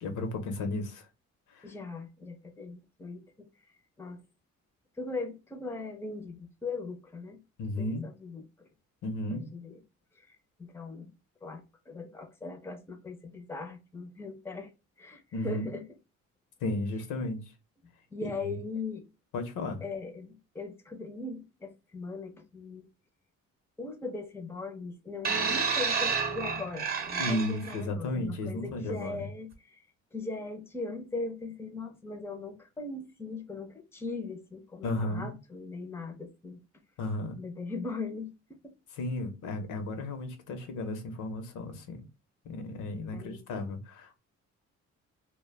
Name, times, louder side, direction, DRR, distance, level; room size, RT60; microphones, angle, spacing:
voice 1, 0.0-1.1 1.5-1.7 7.6-8.1 9.0-9.5 15.3-15.7 16.6-17.4 18.2-18.6 19.3-19.8 27.2-29.3 34.8-35.3 37.0-37.4 38.9-42.0 42.4-44.2, left 2 dB, 80° left, 0.7 m, -34 dB
voice 2, 1.6-3.5 4.0-4.2 5.0-7.4 7.8-8.7 9.3-9.8 10.2-11.1 11.4-14.7 15.0-15.8 18.1-19.0 19.8-22.9 23.8-29.8 30.1-36.6 37.3-38.3 38.6-38.7 43.1-43.4, left 3 dB, 10° left, 0.5 m, -39 dB
sound 1, 25.2-27.8 28.7-28.9, right 5 dB, 30° right, 0.8 m, -30 dB
2.2 x 2.1 x 3.2 m
cardioid pair, 90°, 30 cm